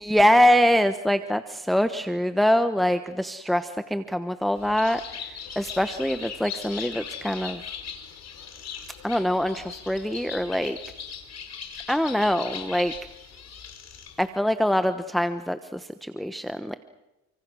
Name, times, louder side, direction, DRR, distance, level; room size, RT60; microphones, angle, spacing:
voice 1, 0.0-7.6 9.0-10.8 11.9-12.9 14.2-16.8, equal, ahead, 9 dB, 1.1 m, -24 dB
Bird, 4.6-14.3, left 7 dB, 60° left, 4.1 m, -39 dB
29.5 x 24.5 x 6.3 m, 1.0 s
cardioid pair, 90°, 30 cm